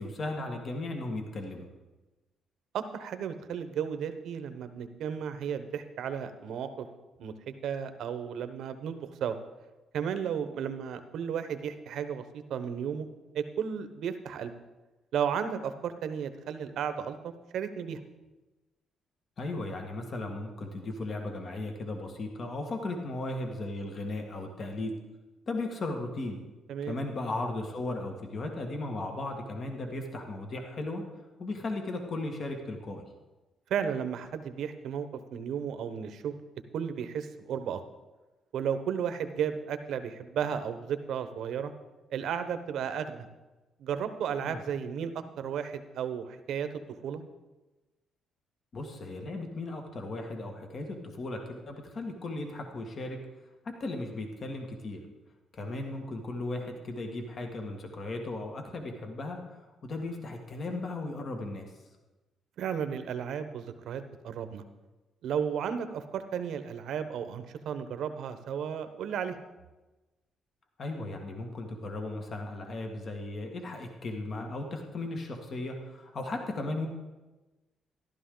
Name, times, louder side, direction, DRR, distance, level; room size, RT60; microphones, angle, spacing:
voice 1, 0.0-1.7 19.4-25.0 25.5-26.4 26.9-31.0 31.4-33.0 44.4-44.6 48.7-53.2 53.6-55.0 55.5-61.7 70.8-76.9, left 2 dB, 50° left, 3 dB, 1.8 m, -36 dB
voice 2, 2.7-6.9 7.2-9.4 9.9-13.1 13.3-14.5 15.1-18.0 26.7-27.0 33.7-36.4 36.7-37.8 38.5-41.7 42.1-43.3 43.8-46.7 47.0-47.2 62.6-64.6 65.2-69.4, right 8 dB, 75° right, 10 dB, 1.0 m, -34 dB
14.0 x 12.0 x 3.9 m, 1.1 s
cardioid pair, 90°, 0 cm